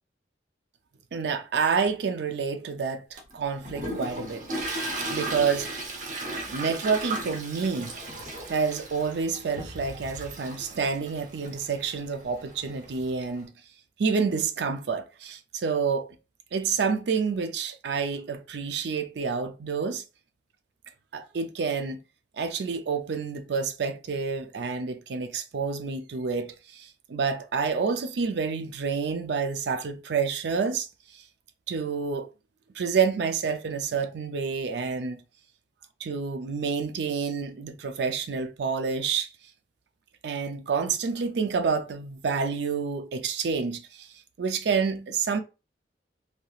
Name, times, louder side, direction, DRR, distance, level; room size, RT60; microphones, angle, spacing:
voice 1, 1.1-5.7 6.4-7.9 8.5-13.5 14.0-16.1 16.5-20.0 21.1-22.0 22.4-30.9 31.7-32.3 32.7-35.2 36.1-39.3 40.2-44.1 44.4-45.4, right 5 dB, 70° right, 0.4 m, -28 dB
Toilet flush, 3.2-13.4, right 1 dB, 45° right, 0.8 m, -36 dB
3.3 x 2.7 x 2.3 m
head